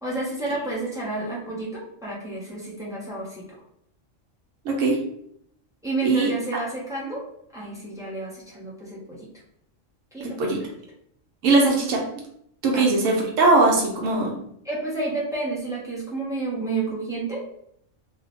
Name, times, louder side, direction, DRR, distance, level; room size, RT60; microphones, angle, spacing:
voice 1, 0.0-3.4 5.8-7.2 7.5-9.3 10.1-10.6 12.7-13.0 14.6-17.4, right 3 dB, 5° right, -5 dB, 0.4 m, -30 dB
voice 2, 4.6-5.0 6.0-6.3 10.2-10.6 11.4-12.0 12.6-14.3, right 3 dB, 85° right, 0 dB, 1.1 m, -20 dB
2.8 x 2.0 x 2.8 m, 0.71 s
omnidirectional pair, 1.3 m